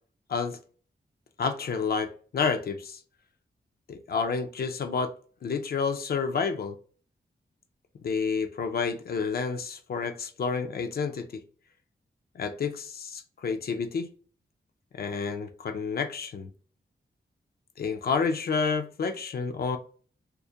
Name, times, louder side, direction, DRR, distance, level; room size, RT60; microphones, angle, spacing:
voice 1, 1.4-3.0 3.9-5.1 5.4-6.8 8.0-11.4 12.3-14.1 14.9-16.5 17.8-19.8, left 5 dB, 55° left, 0.4 m, -29 dB
2.3 x 2.1 x 2.6 m
wide cardioid pair, 95°, 18 cm